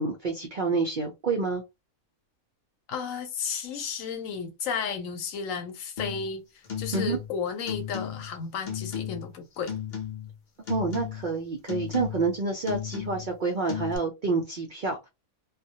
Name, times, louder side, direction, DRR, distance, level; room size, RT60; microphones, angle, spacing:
voice 1, 0.0-1.6 6.9-7.2 10.7-15.1, right 4 dB, 70° right, 0.4 m, -28 dB
voice 2, 2.9-9.7, left 6 dB, 70° left, 1.0 m, -33 dB
sound 1, 6.0-6.3 6.6-7.3 7.7-8.4 8.7-9.3 9.7-10.4 10.7-11.3 11.7-12.4 12.7-13.3 13.7-14.0, left 8 dB, 50° left, 0.5 m, -35 dB
2.3 x 2.1 x 2.7 m
omnidirectional pair, 1.5 m